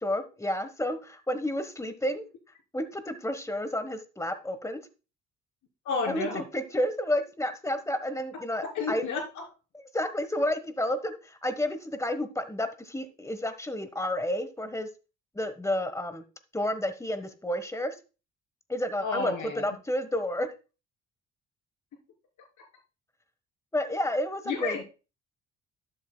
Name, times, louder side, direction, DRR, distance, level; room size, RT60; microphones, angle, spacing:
voice 1, 0.0-2.2 2.7-4.8 6.1-9.1 9.9-14.9 15.3-16.2 16.5-17.9 18.7-20.5 23.7-24.8, left 1 dB, 10° left, 11 dB, 1.2 m, -30 dB
voice 2, 5.9-6.4 8.7-9.4 19.0-19.6 24.5-24.8, left 4 dB, 75° left, 0 dB, 3.5 m, -31 dB
11.5 x 7.7 x 2.2 m, 0.32 s
cardioid pair, 90°, 30 cm